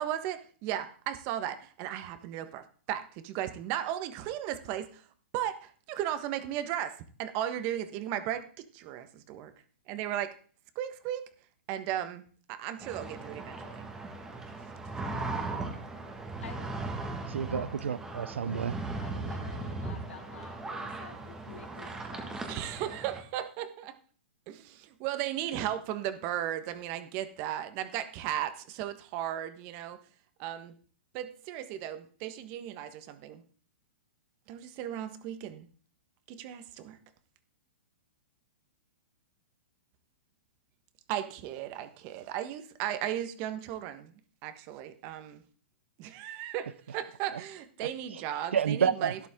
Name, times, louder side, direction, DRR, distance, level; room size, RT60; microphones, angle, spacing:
voice 1, 0.0-5.0 5.3-8.5 8.7-9.5 9.9-10.3 10.7-11.3 11.7-12.2 12.5-13.9 22.5-24.0 24.5-30.0 30.4-30.7 31.1-33.4 34.5-35.7 36.3-37.0 41.1-44.1 44.4-45.4 46.0-49.2, right 11 dB, 35° right, 1.3 m, -36 dB
sound 1, 12.8-23.2, right 2 dB, 10° right, 1.8 m, -38 dB
voice 2, 16.4-16.9 19.0-22.4, left 6 dB, 85° left, 2.7 m, -50 dB
voice 3, 17.3-18.8 48.5-49.1, right 7 dB, 85° right, 0.7 m, -29 dB
12.0 x 11.0 x 3.7 m
hypercardioid pair, 155°, 6 cm